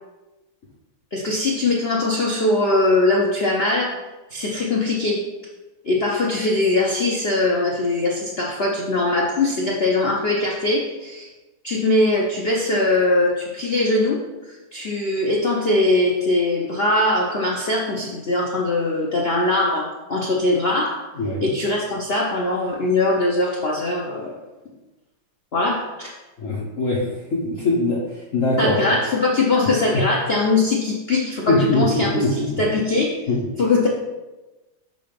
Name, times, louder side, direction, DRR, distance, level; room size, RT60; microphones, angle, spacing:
voice 1, 1.1-3.9 4.3-5.3 5.8-11.3 11.6-21.0 21.4-24.4 25.5-26.2 28.6-33.2 33.6-33.9, left 2 dB, 65° left, -2 dB, 0.6 m, -21 dB
voice 2, 21.1-21.5 26.4-28.8 31.5-32.5 33.3-33.4, left 2 dB, 45° left, -5 dB, 1.3 m, -22 dB
6.7 x 4.0 x 5.1 m, 1.1 s
omnidirectional pair, 2.2 m